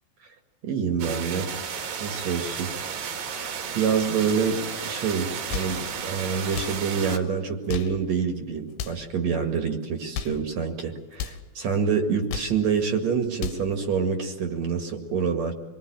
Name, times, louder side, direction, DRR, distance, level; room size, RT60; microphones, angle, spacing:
voice 1, 0.6-1.5 2.0-2.7 3.2-15.5, right 6 dB, 50° right, 5 dB, 2.9 m, -27 dB
sound 1, 1.0-7.2, right 6 dB, 70° right, 3.6 m, -33 dB
sound 2, 5.5-5.8 6.5-6.8 7.5-8.0 8.7-9.1 9.9-10.4 11.1-11.4 12.1-12.6 13.2-13.7, left 8 dB, 75° left, 2.9 m, -34 dB
26.5 x 22.0 x 8.9 m, 1.2 s
omnidirectional pair, 4.4 m